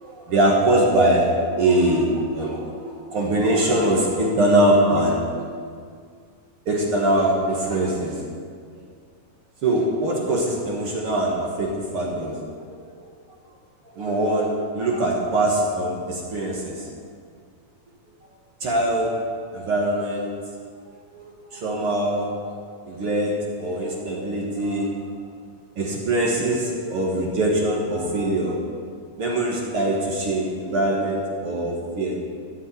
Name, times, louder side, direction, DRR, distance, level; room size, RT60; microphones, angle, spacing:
voice 1, 0.0-5.5 6.7-8.2 9.6-12.4 14.0-16.9 18.6-19.2 19.5-20.3 21.1-22.6 22.9-24.9 25.8-28.6 29.2-32.2, right 1 dB, 50° right, -2 dB, 1.9 m, -22 dB
14.0 x 5.5 x 8.1 m, 2.1 s
omnidirectional pair, 3.9 m